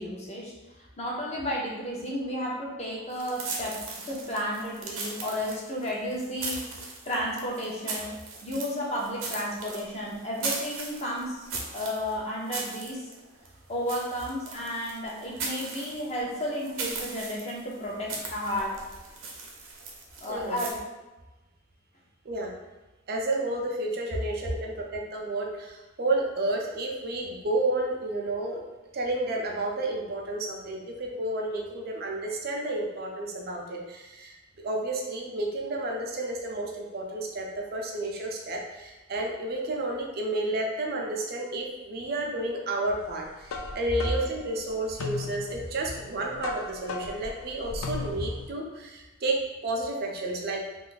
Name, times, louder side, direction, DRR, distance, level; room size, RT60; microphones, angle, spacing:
voice 1, 0.0-3.8 4.1-6.6 7.1-8.1 8.4-13.0 13.7-18.8 20.2-20.7, equal, 35° left, -3 dB, 0.7 m, -32 dB
sound 1, 3.1-20.7, right 3 dB, 90° right, 0.7 m, -38 dB
voice 2, 20.3-20.6 22.2-22.5 23.1-28.6 28.9-34.3 34.6-49.4 49.6-50.6, right 2 dB, 50° right, 0 dB, 0.5 m, -31 dB
sound 2, 43.1-48.5, left 4 dB, 85° left, 0.4 m, -37 dB
2.5 x 2.4 x 3.8 m, 1.1 s
head